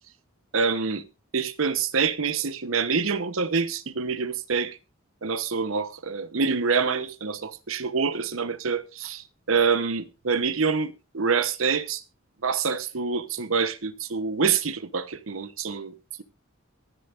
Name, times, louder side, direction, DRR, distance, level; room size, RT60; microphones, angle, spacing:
voice 1, 0.5-1.0 1.3-4.8 5.2-12.0 12.4-15.9, right 5 dB, 75° right, 0.9 m, -26 dB
23.5 x 9.7 x 2.5 m
head